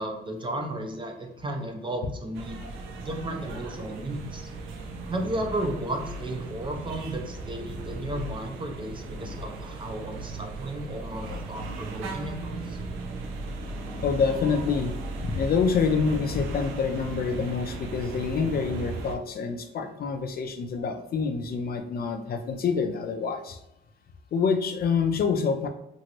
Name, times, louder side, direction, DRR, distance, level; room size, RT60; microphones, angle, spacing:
voice 1, 0.0-2.6 3.0-4.4 5.1-12.8, right 1 dB, 25° right, 3 dB, 0.6 m, -34 dB
sound 1, 2.3-19.2, right 2 dB, 90° right, 0.5 m, -37 dB
voice 2, 14.0-15.0 15.2-23.6 24.3-25.7, left 5 dB, 50° left, 6 dB, 0.4 m, -27 dB
2.9 x 2.6 x 2.9 m, 0.85 s
cardioid pair, 90°, 20 cm